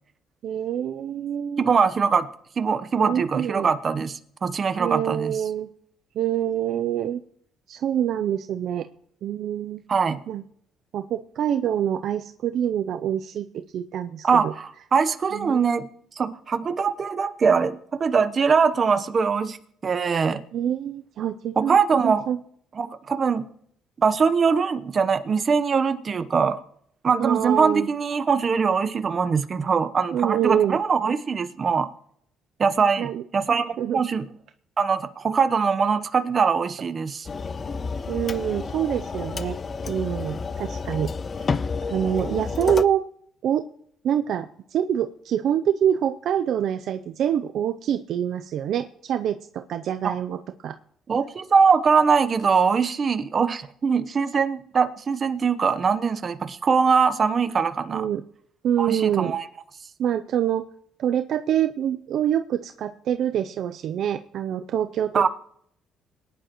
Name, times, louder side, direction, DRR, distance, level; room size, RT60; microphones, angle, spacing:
voice 1, 0.4-1.7 3.0-3.7 4.8-5.7 6.2-7.2 7.7-8.9 9.2-9.8 10.3-10.4 10.9-14.5 15.3-15.6 20.5-22.4 27.2-27.9 30.1-30.8 33.0-33.2 33.8-34.0 38.1-39.6 39.8-41.1 41.4-41.5 41.9-43.0 43.4-43.6 44.0-50.7 57.9-58.2 58.6-59.4 60.0-60.6 61.0-65.3, right 10 dB, 65° right, 0.5 m, -26 dB
voice 2, 1.6-2.3 2.6-5.4 9.9-10.2 14.2-15.8 16.2-19.6 19.8-20.4 21.6-22.2 22.8-23.4 24.0-26.6 27.0-31.9 32.6-34.2 34.8-37.3 50.0-50.1 51.1-58.1 58.8-59.5 65.1-65.3, right 5 dB, 40° right, 0.9 m, -22 dB
sound 1, 37.3-42.8, left 4 dB, 35° left, 0.4 m, -30 dB
21.0 x 10.5 x 3.0 m
cardioid pair, 100°, 0 cm